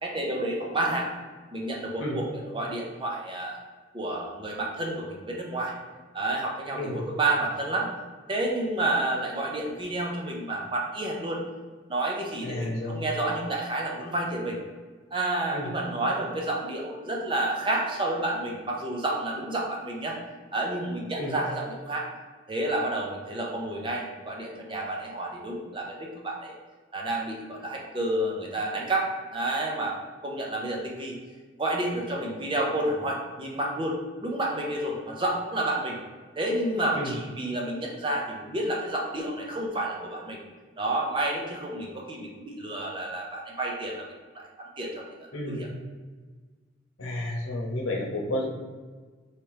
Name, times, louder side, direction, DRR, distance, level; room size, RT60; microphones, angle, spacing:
voice 1, 0.0-1.1 1.5-3.6 3.9-5.7 6.1-7.9 8.3-11.4 11.9-14.6 15.1-20.2 20.5-22.1 22.5-26.5 26.9-30.0 30.2-31.2 31.6-33.9 34.2-36.0 36.4-40.4 40.8-44.1 44.3-45.7, right 1 dB, 25° right, -2 dB, 0.7 m, -30 dB
voice 2, 6.7-7.0 12.4-13.0 15.5-15.7 21.2-21.4 36.9-37.1 45.3-45.7 47.0-48.5, left 1 dB, 85° left, -1 dB, 0.9 m, -31 dB
3.3 x 3.0 x 4.7 m, 1.4 s
head